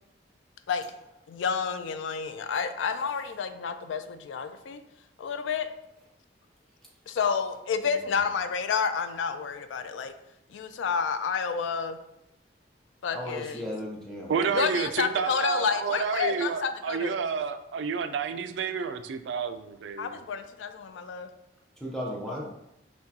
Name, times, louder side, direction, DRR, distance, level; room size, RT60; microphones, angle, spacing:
voice 1, 1.3-4.8 5.2-5.7 7.1-10.1 10.5-12.0 13.0-13.7 14.5-17.2 20.0-21.3 22.3-22.5, left 6 dB, 90° left, 10 dB, 0.3 m, -30 dB
voice 2, 13.1-14.5 21.8-22.5, left 1 dB, ahead, -4 dB, 0.5 m, -35 dB
voice 3, 14.3-20.2, right 6 dB, 80° right, 10 dB, 0.3 m, -30 dB
6.0 x 2.3 x 2.7 m, 0.85 s
head